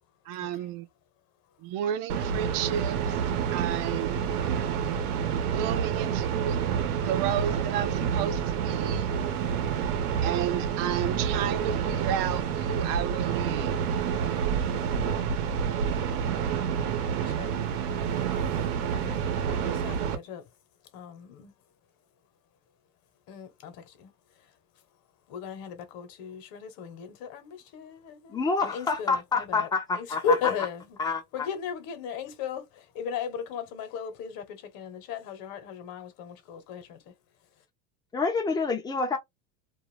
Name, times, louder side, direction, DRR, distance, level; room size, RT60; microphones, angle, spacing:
voice 1, 0.3-0.9 1.6-3.0 3.5-4.3 5.5-6.6 7.0-9.1 10.2-13.7, right 10 dB, 50° right, 0.6 m, -32 dB
sound 1, 2.1-20.2, right 7 dB, 75° right, 0.9 m, -28 dB
voice 2, 17.2-17.7 18.9-19.2 19.5-20.4 20.9-21.5 23.3-24.1 25.3-37.0, left 6 dB, 50° left, 1.1 m, -36 dB
voice 3, 28.3-30.2 31.0-31.5 38.1-39.2, left 4 dB, 10° left, 0.5 m, -27 dB
2.5 x 2.3 x 3.2 m
supercardioid pair, 125°, 46 cm